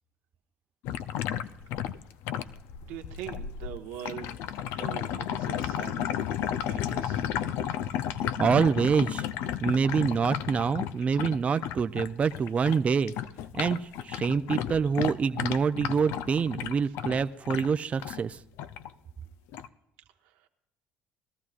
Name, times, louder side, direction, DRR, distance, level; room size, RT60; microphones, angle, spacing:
sound 1, 0.8-12.8 13.1-18.2 18.6-18.9 19.5-19.7, left 10 dB, 75° left, 0.5 m, -33 dB
voice 1, 2.8-4.5 4.8-6.3 6.6-7.3 20.2-20.5, right 11 dB, 85° right, 4 dB, 1.3 m, -42 dB
voice 2, 8.4-9.2 9.6-13.1 13.5-18.4, right 6 dB, 35° right, 11 dB, 0.5 m, -26 dB
20.5 x 13.5 x 2.5 m, 0.92 s
supercardioid pair, 85°, 4 cm